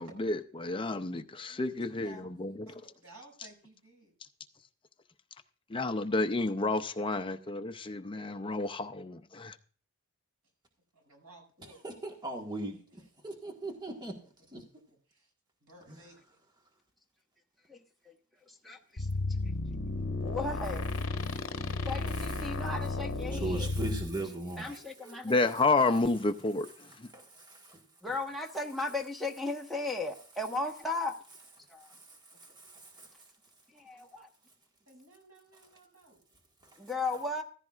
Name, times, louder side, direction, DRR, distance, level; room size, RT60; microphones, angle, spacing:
voice 1, 0.0-2.5 5.7-9.6 25.2-26.7 27.0-27.1, left 3 dB, 25° left, 0.5 m, -30 dB
voice 2, 1.8-2.3 2.7-4.1 10.9-11.8 15.1-15.3 15.6-16.4 24.6-26.1 32.3-32.6 34.9-36.2, right 2 dB, 90° right, 6.5 m, -55 dB
voice 3, 11.6-14.2 14.5-14.7 15.9-16.1 21.3-21.4 22.1-22.5 23.3-24.8 26.8-27.9 31.8-33.3 36.6-36.9, right 2 dB, 20° right, 1.5 m, -40 dB
voice 4, 18.6-19.1 20.2-20.9 21.9-23.7 24.6-25.5 28.0-31.1 31.7-31.9 33.7-34.3 36.8-37.4, left 2 dB, ahead, 1.2 m, -36 dB
sound 1, 19.0-24.1, left 2 dB, 60° left, 1.0 m, -33 dB
15.0 x 14.5 x 2.4 m
head